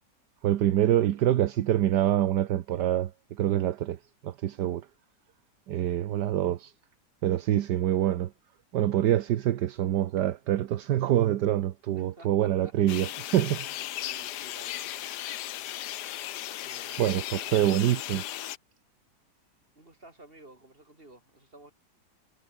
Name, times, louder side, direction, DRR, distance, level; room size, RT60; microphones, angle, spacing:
voice 1, 0.4-4.9 5.7-6.7 7.2-8.3 8.7-13.7 17.0-17.2 17.5-18.2, right 12 dB, 75° right, 1.5 m, -25 dB
voice 2, 12.0-12.7 14.0-15.1 16.6-17.6 19.8-21.7, right 2 dB, 30° right, 5.4 m, -53 dB
sound 1, 12.9-18.6, left 13 dB, 75° left, 1.3 m, -36 dB
omnidirectional pair, 1.8 m